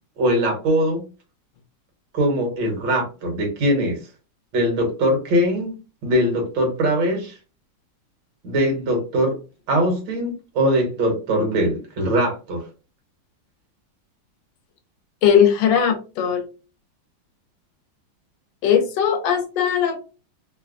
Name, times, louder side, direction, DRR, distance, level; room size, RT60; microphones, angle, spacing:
voice 1, 0.2-1.0 2.1-4.0 4.5-5.8 6.0-7.3 8.4-9.4 9.7-12.6, equal, 65° right, 1 dB, 1.9 m, -21 dB
voice 2, 15.2-16.5 18.6-20.0, left 8 dB, 70° left, 6 dB, 1.2 m, -19 dB
3.9 x 2.2 x 2.5 m, 0.32 s
omnidirectional pair, 2.3 m